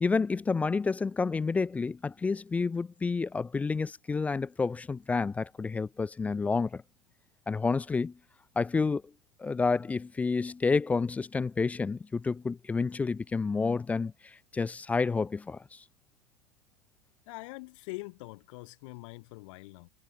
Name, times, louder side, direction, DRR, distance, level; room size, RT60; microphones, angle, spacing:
voice 1, 0.0-6.8 7.5-8.1 8.6-9.0 9.4-15.8, left 4 dB, 5° left, 0.4 m, -29 dB
voice 2, 17.3-19.9, left 25 dB, 50° left, 7.2 m, -43 dB
supercardioid pair, 170°, 20 cm